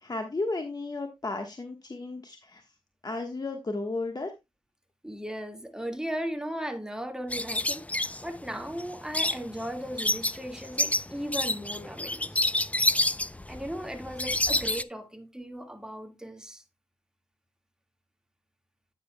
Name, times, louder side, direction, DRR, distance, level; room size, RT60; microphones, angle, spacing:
voice 1, 0.0-2.7 3.0-4.3, left 2 dB, 40° left, 1.3 m, -34 dB
voice 2, 5.0-12.5 13.5-16.6, equal, 5° right, 1.8 m, -37 dB
sound 1, 7.3-14.8, left 1 dB, 15° left, 0.5 m, -29 dB
9.7 x 9.5 x 2.2 m
cardioid pair, 50°, 10 cm